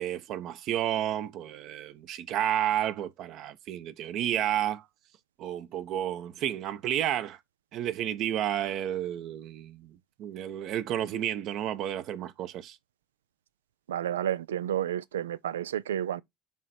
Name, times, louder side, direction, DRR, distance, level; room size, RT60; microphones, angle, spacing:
voice 1, 0.0-4.9 5.4-7.4 7.7-12.8, right 11 dB, 60° right, 0.8 m, -31 dB
voice 2, 13.9-16.2, right 10 dB, 85° right, 0.3 m, -31 dB
7.1 x 3.2 x 4.2 m
hypercardioid pair, 65°, 0 cm